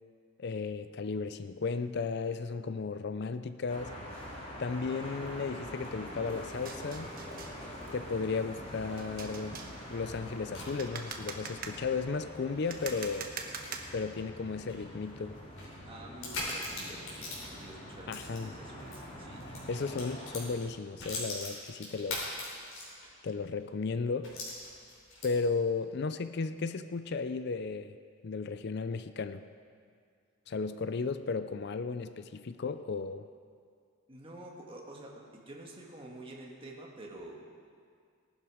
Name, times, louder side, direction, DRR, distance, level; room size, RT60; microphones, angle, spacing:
voice 1, 0.4-4.0 4.6-7.1 7.9-9.6 9.9-13.3 13.9-15.4 18.1-18.5 19.7-22.3 23.2-24.3 25.2-27.9 28.2-29.4 30.5-33.3, left 4 dB, 50° left, 11 dB, 0.4 m, -34 dB
sound 1, 3.7-20.5, equal, 30° left, 2.5 m, -45 dB
sound 2, 6.5-14.3, right 5 dB, 45° right, 1.2 m, -45 dB
sound 3, 10.0-19.0 19.3-23.2 23.6-23.7 24.2-25.6, left 2 dB, 75° left, 4.8 m, -43 dB
voice 2, 15.9-19.5 34.1-37.4, right 1 dB, 25° right, -1 dB, 1.8 m, -48 dB
18.5 x 12.0 x 4.9 m, 2.2 s
head